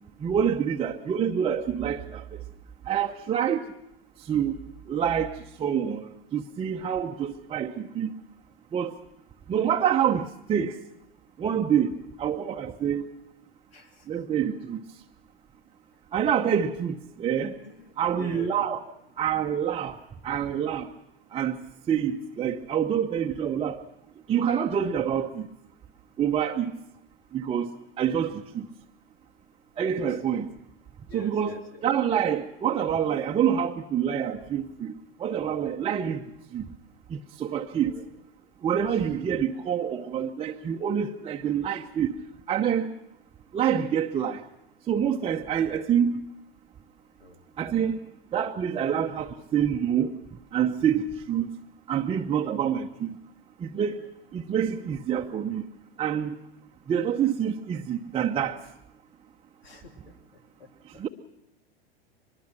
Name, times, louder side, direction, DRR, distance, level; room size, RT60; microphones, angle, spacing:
voice 1, 0.2-2.4 2.9-3.7 4.2-4.6 4.9-8.2 8.7-9.0 9.5-10.8 11.4-13.0 14.1-14.8 16.1-17.6 18.0-18.8 19.2-20.0 20.2-20.9 21.3-21.6 21.9-23.8 24.3-25.5 26.2-26.7 27.3-27.7 28.0-28.7 29.8-30.5 31.1-34.9 35.2-36.2 36.5-36.7 37.1-37.9 38.6-42.2 42.5-42.9 43.5-44.4 44.9-46.2 47.6-48.0 48.3-50.1 50.5-51.5 51.9-53.2 53.6-54.0 54.3-55.7 56.0-56.4 56.9-58.6 60.9-61.1, right 8 dB, 20° right, 0.8 m, -27 dB
voice 2, 13.7-14.1 17.6-18.6 30.1-30.2 31.1-31.8 37.8-38.1 38.6-38.9 47.2-47.4 59.6-61.0, left 1 dB, 80° left, 3.1 m, -46 dB
23.0 x 21.0 x 6.0 m
hypercardioid pair, 100°, 30 cm